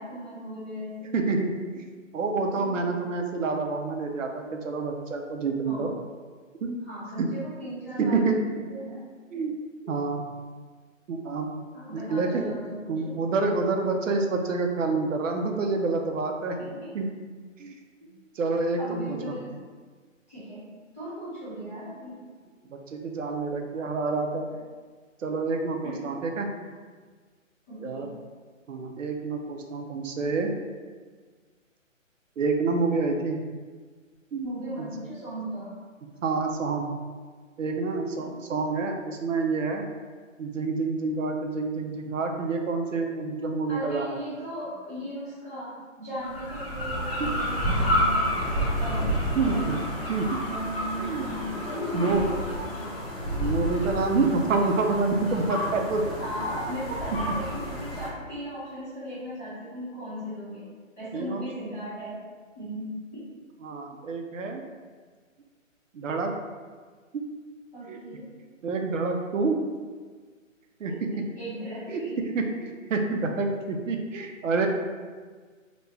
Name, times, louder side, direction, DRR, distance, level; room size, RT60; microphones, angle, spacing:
voice 1, 0.0-1.2 2.5-2.8 5.7-5.9 6.8-9.0 9.3-9.5 9.8-9.9 11.7-13.1 16.6-16.9 18.0-18.2 18.8-19.6 20.3-20.7 20.9-22.2 25.8-26.1 27.7-28.1 34.4-35.7 38.2-38.3 43.7-48.3 48.8-49.1 49.4-49.8 50.4-53.0 56.2-60.7 61.0-62.2 62.5-63.3 67.7-68.3 70.9-72.2, equal, 10° left, -13 dB, 0.7 m, -37 dB
voice 2, 1.1-1.8 2.1-5.9 6.6-6.8 7.2-7.3 8.0-8.4 9.3-9.5 9.9-10.2 11.1-11.5 11.9-12.5 12.9-16.6 16.9-17.1 17.6-17.8 18.3-19.3 22.7-24.5 25.2-26.5 27.8-28.1 28.7-30.5 32.4-33.4 34.3-34.5 34.8-34.9 36.2-36.9 37.6-39.8 40.4-44.1 47.2-47.3 49.4-49.8 50.1-50.3 51.0-51.3 51.9-52.3 53.4-56.0 61.1-61.4 63.6-64.6 65.9-66.3 67.1-67.3 67.9-68.0 68.6-69.6 70.8-71.3 71.9-72.0 72.3-74.7, right 3 dB, 70° right, 3 dB, 0.6 m, -27 dB
sound 1, 46.2-58.1, equal, 45° left, 1.0 m, -30 dB
3.0 x 2.2 x 4.1 m, 1.5 s
hypercardioid pair, 160°, 40 cm